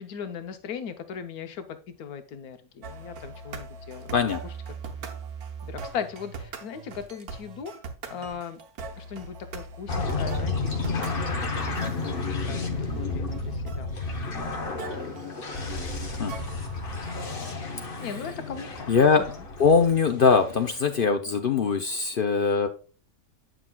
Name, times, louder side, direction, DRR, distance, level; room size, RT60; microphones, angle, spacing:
voice 1, 0.0-4.2 4.4-4.5 4.9-5.1 5.6-7.7 8.1-8.6 9.0-12.6 13.0-14.5 15.7-15.9 18.0-19.4, left 7 dB, 85° left, 8 dB, 1.3 m, -39 dB
sound 1, 2.8-17.4, right 5 dB, 80° right, 1.5 m, -41 dB
sound 2, 9.9-21.0, left 3 dB, 40° left, 1.1 m, -32 dB
voice 2, 18.9-19.3 19.6-22.7, left 5 dB, 60° left, 6 dB, 0.6 m, -21 dB
9.0 x 6.0 x 2.3 m, 0.37 s
omnidirectional pair, 1.6 m